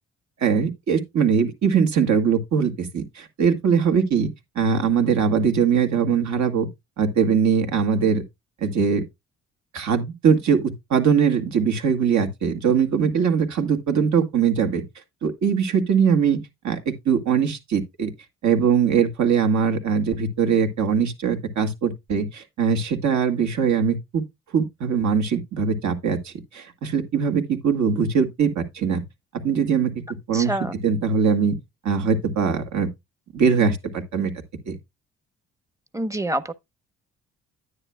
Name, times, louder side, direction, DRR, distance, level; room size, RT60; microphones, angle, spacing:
voice 1, 0.4-4.3 4.6-6.7 7.0-8.2 8.6-9.0 9.7-14.8 15.2-16.4 16.6-18.1 18.4-24.2 24.5-29.0 29.4-29.9 30.3-30.6 30.8-31.6 31.8-32.9 33.3-34.3 34.7-34.8, right 6 dB, 65° right, 2.1 m, -21 dB
voice 2, 30.3-30.7 35.9-36.5, right 1 dB, 10° right, 0.9 m, -26 dB
10.0 x 9.7 x 2.3 m
cardioid pair, 90°, 30 cm